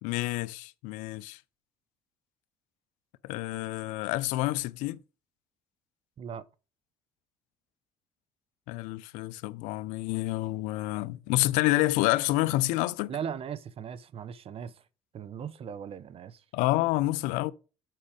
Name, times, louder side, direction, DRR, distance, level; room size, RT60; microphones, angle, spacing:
voice 1, 0.0-1.4 3.2-5.0 8.7-13.2 16.5-17.5, left 18 dB, 85° left, 0.6 m, -28 dB
voice 2, 13.1-14.8 15.1-16.4, right 8 dB, 50° right, 0.9 m, -38 dB
7.7 x 5.1 x 5.0 m
supercardioid pair, 85°, 13 cm